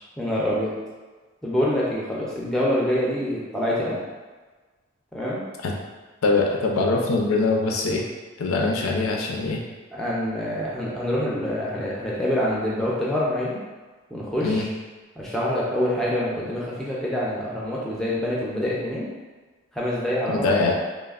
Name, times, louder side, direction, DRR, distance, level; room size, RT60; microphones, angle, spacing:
voice 1, 0.2-0.8 1.4-4.0 5.1-5.4 9.9-13.6 14.1-14.6 15.2-19.1 19.7-20.5, left 1 dB, ahead, -6 dB, 0.4 m, -26 dB
voice 2, 6.2-8.1 8.4-9.6 14.4-14.7 20.3-20.7, left 3 dB, 90° left, 0 dB, 0.4 m, -22 dB
3.1 x 2.0 x 2.3 m, 1.3 s
head